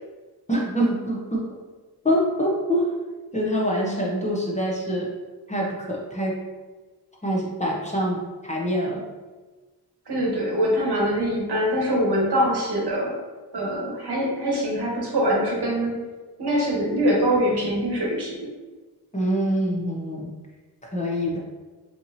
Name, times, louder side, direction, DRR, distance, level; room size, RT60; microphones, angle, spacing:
voice 1, 0.5-1.4 2.0-2.9 3.3-5.1 5.5-6.4 7.2-9.0 19.1-20.3 20.9-21.4, equal, 15° left, -4 dB, 0.7 m, -25 dB
voice 2, 10.1-13.1 13.5-15.9 16.4-18.5, equal, 75° right, -3 dB, 1.1 m, -23 dB
4.4 x 2.8 x 2.7 m, 1.3 s
wide cardioid pair, 105°, 40 cm